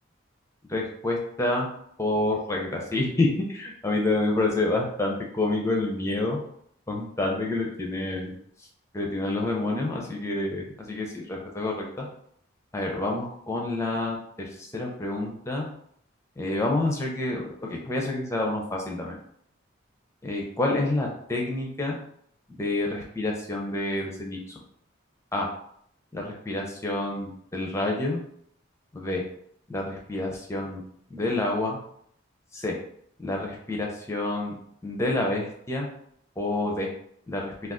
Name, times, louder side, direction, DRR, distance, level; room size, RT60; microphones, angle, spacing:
voice 1, 0.7-1.7 2.0-6.4 6.9-8.3 8.9-12.1 12.7-15.7 16.4-19.2 20.2-22.0 22.6-24.6 25.3-25.5 26.1-28.2 28.9-29.2 29.7-30.8 31.1-31.8 32.5-32.8 33.2-34.6 34.8-35.9 36.4-36.9 37.3-37.5, left 2 dB, 15° left, 0 dB, 0.4 m, -28 dB
2.4 x 2.3 x 3.5 m, 0.68 s
head